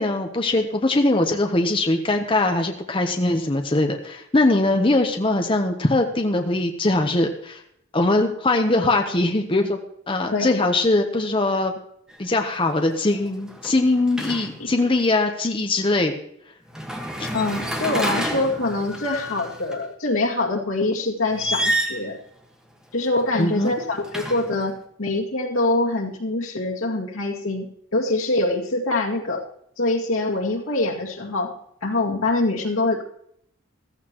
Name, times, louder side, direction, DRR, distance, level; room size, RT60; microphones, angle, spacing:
voice 1, 0.0-7.6 7.9-9.8 10.1-11.7 12.2-16.1 17.2-17.3 23.4-23.7, left 2 dB, 25° left, 4 dB, 0.8 m, -21 dB
voice 2, 10.3-10.7 17.3-22.2 22.9-29.4 29.8-31.5 31.8-33.0, left 2 dB, 90° left, 0 dB, 2.2 m, -24 dB
sound 1, 12.1-12.4 12.7-14.8 16.7-19.8 21.3-22.1 23.3-24.7, equal, 5° right, 1.4 m, -29 dB
15.0 x 14.0 x 3.0 m, 0.72 s
head